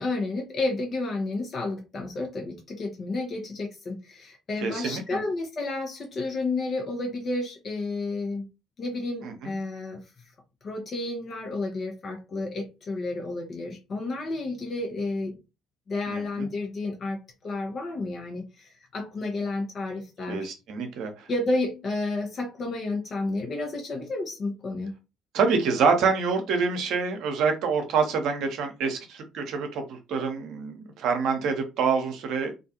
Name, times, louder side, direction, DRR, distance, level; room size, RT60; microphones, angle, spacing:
voice 1, 0.0-8.5 8.8-10.0 10.6-15.3 15.9-20.5 21.3-24.9, left 2 dB, 45° left, 0.8 m, -31 dB
voice 2, 4.6-5.2 9.2-9.5 16.1-16.5 20.3-21.3 25.3-32.5, right 5 dB, 65° right, 0.7 m, -26 dB
2.4 x 2.3 x 2.8 m
hypercardioid pair, 60°, 0 cm